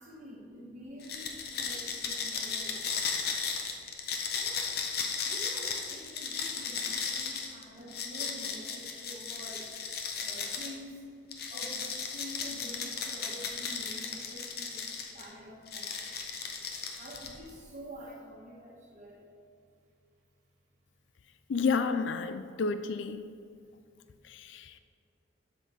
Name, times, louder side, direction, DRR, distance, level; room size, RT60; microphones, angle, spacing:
voice 1, 0.0-3.0 4.3-4.6 5.2-9.7 10.1-11.1 11.5-16.1 16.6-19.3 22.5-22.6 23.4-23.5, equal, 40° right, -4 dB, 1.5 m, -48 dB
sound 1, 1.0-10.8 11.3-15.3 15.7-17.5, left 5 dB, 50° left, 0.9 m, -35 dB
voice 2, 21.5-23.2 24.3-24.8, left 5 dB, 75° left, 10 dB, 0.4 m, -30 dB
11.5 x 6.0 x 3.5 m, 2.4 s
head